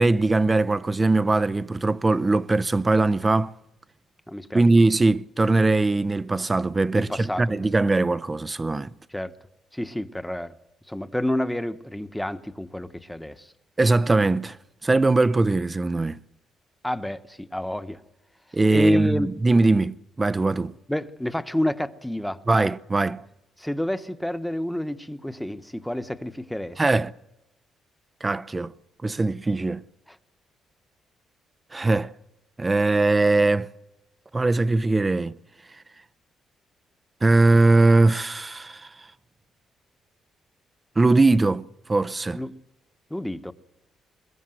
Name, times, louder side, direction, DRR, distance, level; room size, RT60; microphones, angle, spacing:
voice 1, 0.0-3.5 4.5-8.9 13.8-14.6 14.8-16.2 18.5-20.8 22.5-23.2 26.8-27.1 28.2-28.7 29.0-29.8 31.7-32.1 32.6-33.7 34.3-35.4 37.2-38.9 41.0-42.4, right 2 dB, 20° right, 0.8 m, -21 dB
voice 2, 4.3-4.6 6.9-7.5 9.1-9.3 9.7-10.5 10.9-13.5 16.8-18.0 18.7-19.3 20.9-22.4 23.6-26.8 42.3-42.6 43.1-43.5, left 1 dB, 5° left, 1.3 m, -29 dB
22.5 x 21.5 x 7.9 m
cardioid pair, 90°, 0 cm